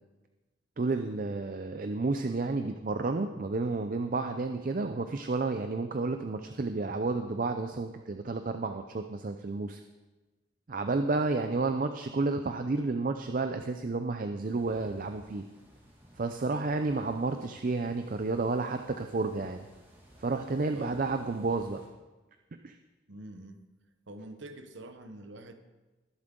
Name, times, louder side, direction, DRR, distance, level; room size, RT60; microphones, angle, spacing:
voice 1, 0.8-9.8 10.7-15.4 16.2-19.7 20.2-21.8 22.6-22.7, right 3 dB, 45° right, 7 dB, 0.5 m, -31 dB
sound 1, 14.4-21.9, equal, 10° right, 2.0 m, -58 dB
voice 2, 23.1-23.6 24.1-25.5, right 1 dB, 70° right, 7 dB, 1.0 m, -45 dB
19.5 x 7.5 x 3.8 m, 1.2 s
head